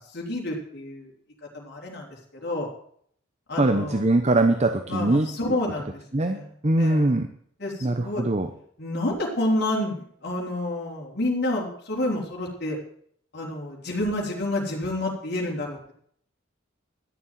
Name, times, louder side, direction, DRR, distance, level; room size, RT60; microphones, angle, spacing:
voice 1, 0.1-1.1 1.5-2.7 3.5-4.0 4.9-6.5 6.8-7.1 7.6-8.2 8.8-12.8 13.3-15.9, left 1 dB, 55° left, -2 dB, 3.6 m, -29 dB
voice 2, 3.6-5.6 6.1-7.3 7.8-8.5, right 2 dB, 35° right, 7 dB, 0.9 m, -22 dB
12.5 x 7.1 x 9.2 m, 0.63 s
head